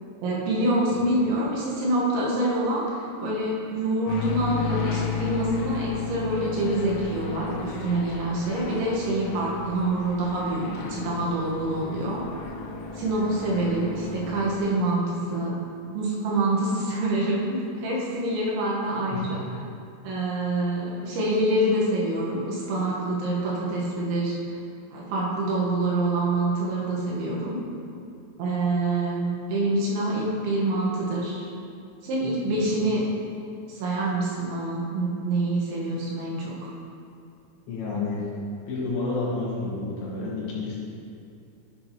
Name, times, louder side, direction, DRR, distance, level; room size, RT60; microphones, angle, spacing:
voice 1, 0.2-12.2 12.9-15.5 15.9-19.4 20.0-24.5 24.9-27.6 28.4-31.5 32.0-33.0 33.8-36.7, right 1 dB, 75° right, -5 dB, 3.4 m, -26 dB
sound 1, 4.1-14.6, left 6 dB, 90° left, 3.3 m, -34 dB
voice 2, 37.7-38.2 38.7-40.8, left 3 dB, 70° left, -6 dB, 3.5 m, -29 dB
9.7 x 7.7 x 2.9 m, 2.6 s
omnidirectional pair, 5.6 m